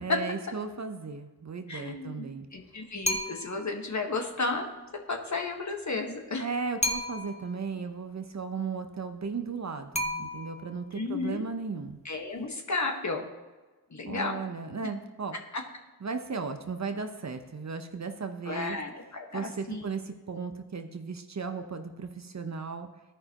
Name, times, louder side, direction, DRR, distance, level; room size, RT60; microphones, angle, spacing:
voice 1, 0.0-2.5 6.4-10.8 11.1-12.0 14.1-15.4 16.0-18.8 19.3-22.9, right 5 dB, 40° right, 6 dB, 0.9 m, -36 dB
voice 2, 1.7-4.7 5.1-6.5 10.9-11.5 12.0-13.3 13.9-14.4 15.5-15.6 18.4-19.8, left 3 dB, 40° left, 2 dB, 1.5 m, -33 dB
sound 1, 3.0-3.7 6.8-7.5 9.9-10.7, equal, 15° left, 0.9 m, -32 dB
13.5 x 5.4 x 3.0 m, 1.2 s
cardioid pair, 45°, 41 cm